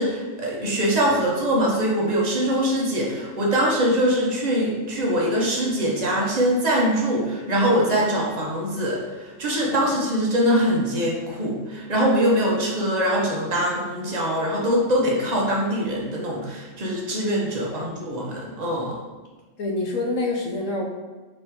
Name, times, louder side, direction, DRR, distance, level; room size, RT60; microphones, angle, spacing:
voice 1, 0.0-19.0, equal, 40° right, -3 dB, 0.9 m, -23 dB
voice 2, 19.6-20.9, left 2 dB, 85° left, 0 dB, 1.2 m, -27 dB
4.2 x 3.5 x 3.0 m, 1.3 s
omnidirectional pair, 1.3 m